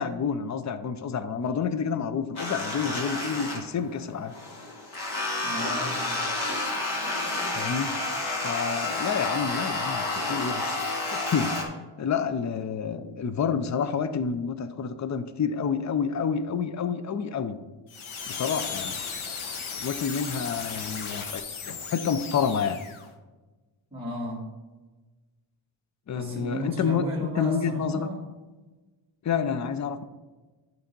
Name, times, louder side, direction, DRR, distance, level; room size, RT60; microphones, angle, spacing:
voice 1, 0.0-4.3 7.5-7.9 8.4-10.9 11.1-11.5 12.0-17.6 18.3-19.0 19.8-22.8 26.1-28.1 29.2-30.0, left 6 dB, 35° left, 11 dB, 0.5 m, -29 dB
sound 1, 2.4-4.0 4.3-11.6, left 2 dB, 55° left, 2.2 m, -30 dB
voice 2, 5.4-6.3 23.9-24.5 26.1-28.2, equal, 10° right, -7 dB, 2.0 m, -34 dB
sound 2, 17.9-23.1, left 5 dB, 75° left, 1.1 m, -36 dB
11.5 x 3.9 x 5.3 m, 1.2 s
wide cardioid pair, 170°, 48 cm